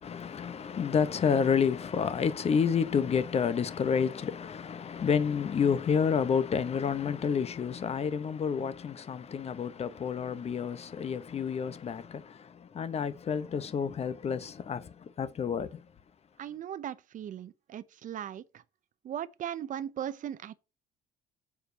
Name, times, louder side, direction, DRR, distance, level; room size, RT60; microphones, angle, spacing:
voice 1, 0.0-15.8, left 6 dB, 40° left, 0.9 m, -29 dB
voice 2, 16.4-18.6 19.0-20.5, right 10 dB, 50° right, 0.8 m, -38 dB
7.1 x 4.4 x 6.5 m
cardioid pair, 110°, 17 cm